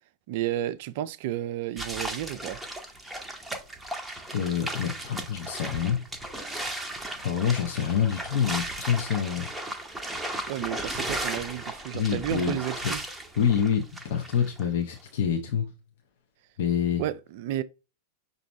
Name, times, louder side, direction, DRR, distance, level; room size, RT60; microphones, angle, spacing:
voice 1, 0.3-2.6 10.5-13.0 17.0-17.6, right 13 dB, 50° right, 0.3 m, -32 dB
sound 1, 1.8-14.7, right 1 dB, 5° right, 0.8 m, -36 dB
voice 2, 4.3-6.0 7.2-9.5 11.9-12.6 13.4-15.7 16.6-17.0, left 8 dB, 55° left, 0.8 m, -26 dB
5.9 x 2.7 x 3.1 m
figure-of-eight pair, 90°, 0 cm